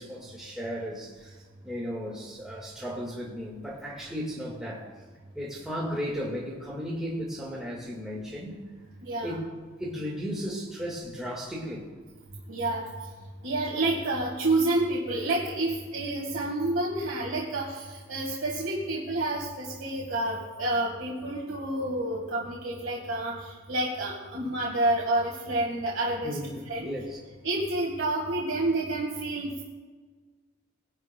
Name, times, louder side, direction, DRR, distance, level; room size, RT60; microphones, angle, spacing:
voice 1, 0.0-4.9 5.4-8.6 9.2-9.4 9.8-11.9 26.2-27.2, equal, 5° right, -6 dB, 1.7 m, -35 dB
voice 2, 9.0-9.3 12.5-12.9 13.4-26.9 27.4-29.6, right 2 dB, 70° right, -3 dB, 1.7 m, -29 dB
19.5 x 11.0 x 2.2 m, 1.4 s
head